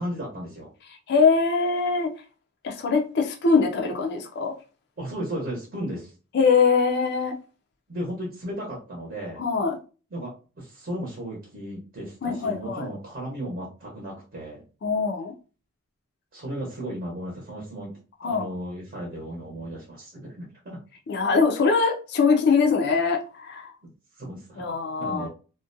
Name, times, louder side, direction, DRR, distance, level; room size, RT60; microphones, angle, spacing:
voice 1, 0.0-0.7 5.0-6.1 7.9-9.4 10.1-14.6 16.3-17.9 18.2-20.8 23.8-24.7 25.0-25.3, right 1 dB, 40° right, -3 dB, 0.8 m, -35 dB
voice 2, 0.9-2.1 2.6-4.5 6.3-7.4 9.4-9.8 12.2-12.9 14.8-15.3 18.2-18.5 21.1-23.7 24.6-25.3, left 5 dB, 50° left, 2 dB, 0.4 m, -22 dB
2.4 x 2.1 x 2.5 m, 0.35 s
head